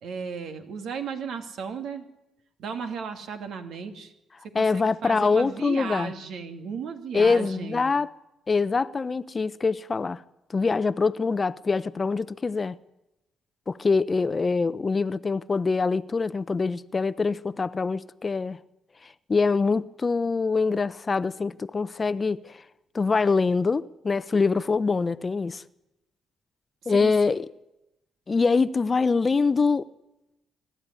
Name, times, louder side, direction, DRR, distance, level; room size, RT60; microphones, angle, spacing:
voice 1, 0.0-2.1 2.6-4.1 4.5-7.9 26.8-27.4, right 6 dB, 75° right, 2.6 m, -35 dB
voice 2, 4.5-6.1 7.1-8.1 8.5-10.2 10.5-12.8 13.7-18.6 19.3-22.6 22.9-25.6 26.9-27.4 28.3-29.8, left 4 dB, 30° left, 0.7 m, -24 dB
25.5 x 12.5 x 9.8 m
cardioid pair, 90°, 0 cm